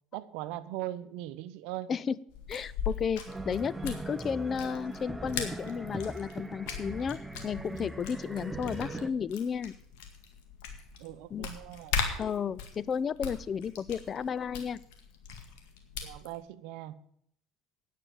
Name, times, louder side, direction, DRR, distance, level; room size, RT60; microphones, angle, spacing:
voice 1, 0.1-1.9 8.5-8.6 8.9-9.2 11.0-12.0 16.0-17.0, right 14 dB, 65° right, 14 dB, 0.7 m, -40 dB
sound 1, 2.3-16.4, left 6 dB, 70° left, 1.9 m, -40 dB
voice 2, 2.5-7.2 7.4-9.7 11.3-11.5 12.2-14.8, left 7 dB, 40° left, 19 dB, 0.5 m, -33 dB
sound 2, 3.3-9.1, right 2 dB, 10° right, 0.7 m, -40 dB
9.8 x 7.6 x 9.0 m, 0.69 s
hypercardioid pair, 70°, 0 cm